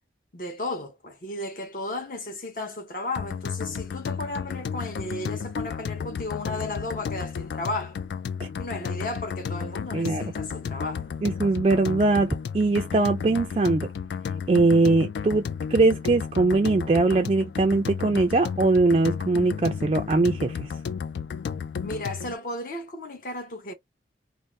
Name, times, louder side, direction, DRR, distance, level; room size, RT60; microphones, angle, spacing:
voice 1, 0.3-8.0 8.6-11.1 21.8-23.7, left 2 dB, 50° left, 0.8 m, -34 dB
sound 1, 3.2-22.4, left 6 dB, 75° left, 0.3 m, -33 dB
voice 2, 9.9-10.2 11.2-13.9 14.5-20.7, right 3 dB, 30° right, 0.3 m, -21 dB
2.6 x 2.0 x 3.1 m
head